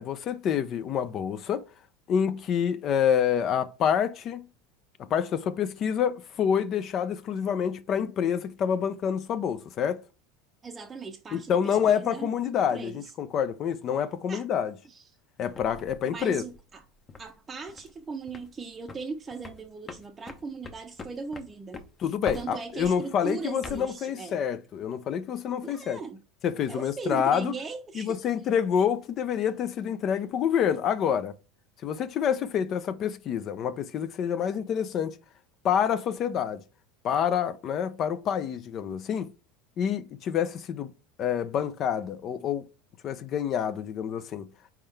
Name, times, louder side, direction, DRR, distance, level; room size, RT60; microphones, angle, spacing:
voice 1, 0.0-1.6 2.1-4.5 5.1-10.0 11.3-14.7 15.4-16.4 22.0-26.0 26.4-27.5 28.0-31.3 31.8-35.2 35.6-36.6 37.0-39.3 39.8-40.9 41.2-42.6 43.0-44.5, left 8 dB, 45° left, 0.4 m, -27 dB
voice 2, 10.6-13.1 14.3-14.4 14.9-15.0 16.1-16.8 17.2-21.8 22.3-24.4 25.6-26.2 26.7-28.2, right 4 dB, 25° right, 0.6 m, -38 dB
sound 1, 15.5-17.3 17.7-18.0 18.3-18.6 18.9-23.0 23.4-23.9, left 3 dB, 30° left, 0.8 m, -44 dB
4.4 x 3.6 x 3.2 m
hypercardioid pair, 100°, 0 cm